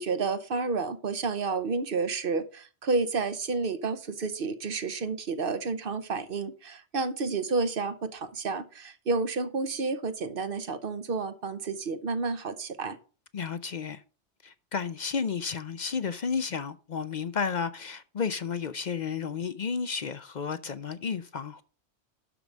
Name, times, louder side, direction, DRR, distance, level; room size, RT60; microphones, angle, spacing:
voice 1, 0.0-13.0, right 4 dB, 55° right, 1.0 m, -30 dB
voice 2, 13.3-14.0 14.4-21.6, left 6 dB, 50° left, 0.6 m, -32 dB
12.0 x 4.7 x 5.3 m
omnidirectional pair, 1.1 m